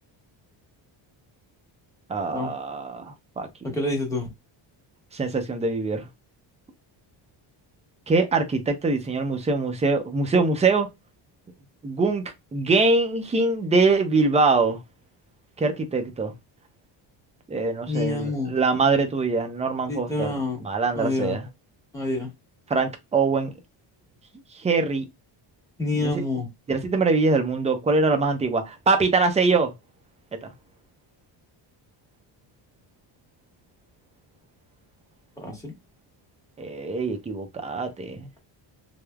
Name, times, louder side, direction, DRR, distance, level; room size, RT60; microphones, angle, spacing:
voice 1, 2.1-3.5 5.1-6.1 8.1-10.9 11.8-12.2 12.5-14.8 15.6-16.3 17.5-21.5 22.7-23.5 24.5-25.0 26.0-26.2 26.7-29.7 30.4-30.5 36.6-38.3, right 3 dB, 15° right, 0.4 m, -23 dB
voice 2, 3.7-4.3 17.9-18.5 19.9-20.6 20.9-21.3 21.9-22.3 25.8-26.5 35.4-35.7, left 2 dB, 5° left, 1.1 m, -27 dB
3.2 x 2.0 x 2.2 m
cardioid pair, 120°, 48 cm